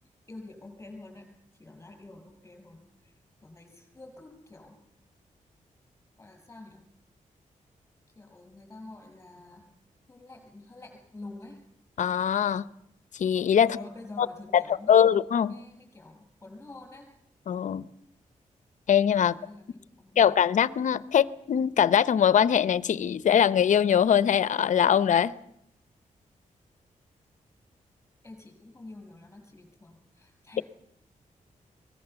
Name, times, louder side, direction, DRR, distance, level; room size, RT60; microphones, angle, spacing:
voice 1, 0.3-1.3 1.6-3.1 3.4-4.8 6.2-6.8 8.2-9.6 10.1-11.6 13.6-15.2 15.5-17.1 19.2-20.4 28.2-30.6, left 2 dB, 15° left, 6.9 m, -47 dB
voice 2, 12.0-12.6 13.2-13.8 14.2-14.3 14.5-15.5 17.5-17.8 18.9-19.3 20.2-25.3, left 8 dB, 70° left, 0.7 m, -22 dB
23.5 x 20.0 x 7.0 m
wide cardioid pair, 155°, 13 cm